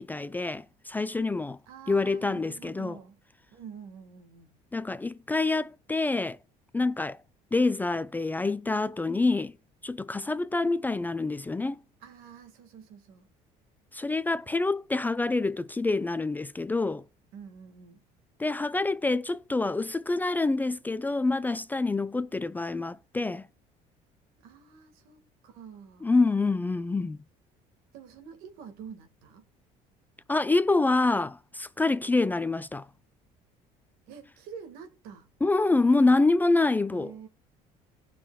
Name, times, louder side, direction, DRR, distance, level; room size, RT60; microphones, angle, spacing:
voice 1, 0.0-1.6 1.9-3.0 4.7-6.4 6.7-7.2 7.5-9.5 9.8-11.8 13.9-17.0 18.4-23.5 26.0-27.2 30.3-32.9 35.4-37.1, left 3 dB, 10° left, 0.3 m, -26 dB
voice 2, 1.7-3.2 3.5-4.5 12.0-13.3 17.3-18.0 24.4-26.1 27.9-29.4 34.1-35.3 36.9-37.3, right 7 dB, 80° right, 1.7 m, -47 dB
16.5 x 5.9 x 2.3 m
cardioid pair, 115°, 15 cm